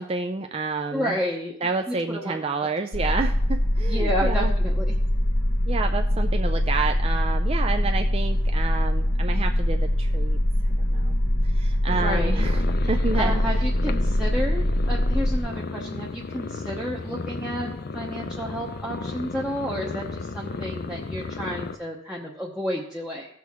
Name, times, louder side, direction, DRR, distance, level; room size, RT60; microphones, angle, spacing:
voice 1, 0.0-1.1 1.6-4.5 5.7-10.4 10.9-11.2 11.4-12.6 12.9-13.4, right 4 dB, 25° right, 5 dB, 0.4 m, -29 dB
voice 2, 0.9-1.5 1.9-2.4 3.0-3.2 3.9-5.0 11.9-12.5 13.2-23.3, equal, 5° right, -4 dB, 0.8 m, -31 dB
sound 1, 2.9-15.4, left 1 dB, 70° left, 1.2 m, -23 dB
sound 2, 11.9-21.8, left 3 dB, 45° left, 0.5 m, -34 dB
16.5 x 6.0 x 3.6 m, 0.74 s
head